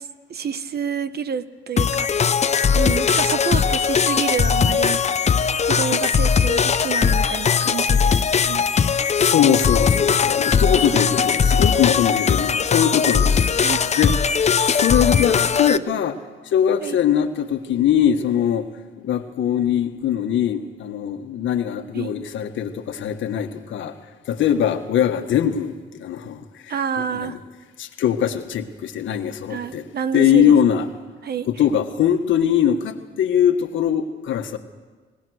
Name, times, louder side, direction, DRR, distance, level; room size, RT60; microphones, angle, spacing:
voice 1, 0.0-5.0 5.6-8.7 9.0-9.1 10.7-11.0 13.6-13.8 16.8-17.0 21.9-22.1 26.7-27.4 29.5-30.6 31.2-31.5, right 7 dB, 55° right, 13 dB, 1.1 m, -29 dB
sound 1, 1.8-15.8, left 6 dB, 35° left, 0.7 m, -19 dB
voice 2, 9.1-13.6 14.0-18.7 19.0-24.0 24.2-26.7 27.1-27.4 27.8-29.8 30.1-30.9 31.6-34.6, left 9 dB, 75° left, 7 dB, 1.6 m, -21 dB
26.0 x 19.5 x 6.5 m, 1.4 s
cardioid pair, 90°, 20 cm